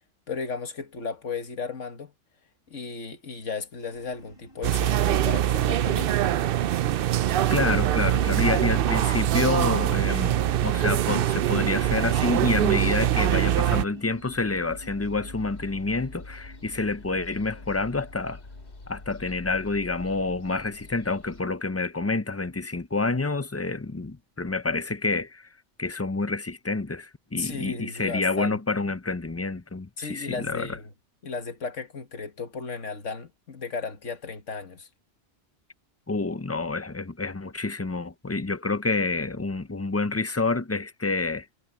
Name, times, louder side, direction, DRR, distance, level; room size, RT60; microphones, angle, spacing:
voice 1, 0.3-2.1 2.7-6.1 27.3-28.6 30.0-30.9 31.2-34.9, left 4 dB, 85° left, 1.9 m, -35 dB
sound 1, 3.7-19.2, equal, 50° left, 6.9 m, -51 dB
sound 2, 4.6-13.8, right 12 dB, 60° right, 0.6 m, -23 dB
voice 2, 7.5-18.4 18.9-25.5 25.8-30.7 36.1-41.5, left 3 dB, 20° left, 0.4 m, -28 dB
sound 3, 11.0-21.4, left 2 dB, 65° left, 3.0 m, -46 dB
omnidirectional pair, 1.2 m